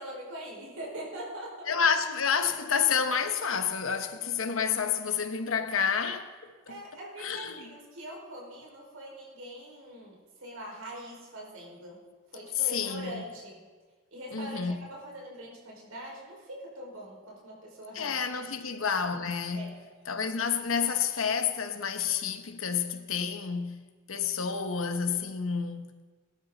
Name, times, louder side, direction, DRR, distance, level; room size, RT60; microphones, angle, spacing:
voice 1, 0.0-1.7 6.7-12.0 12.3-13.6 14.1-18.2 19.5-19.8, right 1 dB, 75° right, 5.0 m, -43 dB
voice 2, 1.7-6.3 6.7-6.8 7.2-7.6 12.7-13.2 14.3-14.8 17.9-19.7 20.1-23.8 24.1-25.9, left 6 dB, 70° left, 1.0 m, -29 dB
21.0 x 12.5 x 4.0 m
head